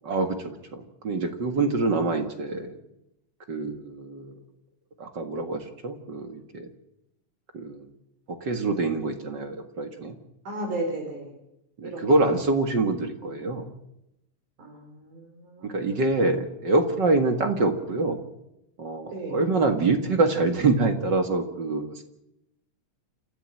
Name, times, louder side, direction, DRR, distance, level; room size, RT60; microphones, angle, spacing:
voice 1, 0.0-2.8 3.5-4.4 5.0-6.7 7.5-7.8 8.3-10.2 11.8-13.7 15.6-18.2 18.8-22.0, right 3 dB, 40° right, 6 dB, 2.0 m, -25 dB
voice 2, 10.5-11.3 11.8-12.3 13.2-13.4 14.6-15.8 19.1-19.4, right 2 dB, 70° right, 2 dB, 5.9 m, -34 dB
28.5 x 14.0 x 7.7 m, 0.84 s
omnidirectional pair, 3.7 m